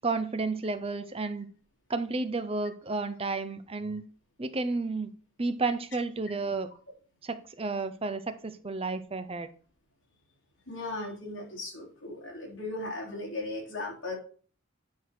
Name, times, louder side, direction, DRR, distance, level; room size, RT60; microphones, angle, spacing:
voice 1, 0.0-1.5 1.9-4.0 4.4-5.1 5.4-6.7 7.2-9.5, right 3 dB, 30° right, 10 dB, 0.6 m, -32 dB
voice 2, 10.7-14.2, left 2 dB, 60° left, -1 dB, 3.7 m, -37 dB
9.4 x 6.2 x 4.4 m, 0.41 s
head